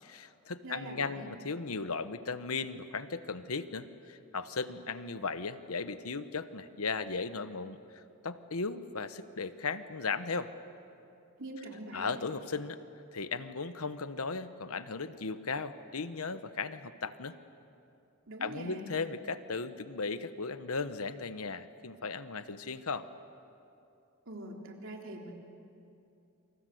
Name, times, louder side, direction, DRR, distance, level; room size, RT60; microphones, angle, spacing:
voice 1, 0.0-10.5 11.9-12.8 13.1-17.4 18.4-23.1, left 4 dB, 80° left, 12 dB, 1.1 m, -36 dB
voice 2, 0.6-1.3 11.4-12.1 18.3-18.9 24.2-25.3, right 1 dB, 60° right, 1 dB, 3.5 m, -43 dB
28.5 x 26.0 x 7.9 m, 2.7 s
head